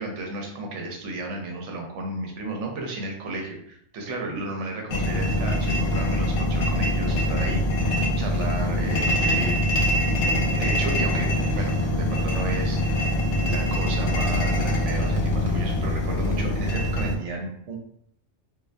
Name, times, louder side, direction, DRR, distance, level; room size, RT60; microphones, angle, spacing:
voice 1, 0.0-9.6 10.6-13.1 13.4-17.8, right 2 dB, 80° right, 1 dB, 0.9 m, -33 dB
sound 1, 4.9-17.1, left 1 dB, 75° left, 0.9 m, -24 dB
2.3 x 2.1 x 2.4 m, 0.67 s
omnidirectional pair, 1.2 m